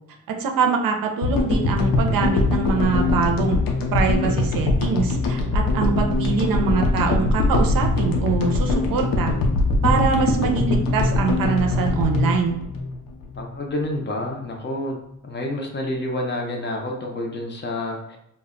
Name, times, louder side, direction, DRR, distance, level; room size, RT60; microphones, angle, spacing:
voice 1, 0.4-3.6 3.9-9.3 9.8-12.6, right 5 dB, 80° right, 3 dB, 0.5 m, -23 dB
sound 1, 1.2-13.5, left 2 dB, 85° left, 0.5 m, -22 dB
voice 2, 13.4-15.0 15.2-18.2, left 1 dB, 35° left, 1 dB, 0.4 m, -28 dB
2.1 x 2.0 x 3.5 m, 0.76 s
wide cardioid pair, 165°, 34 cm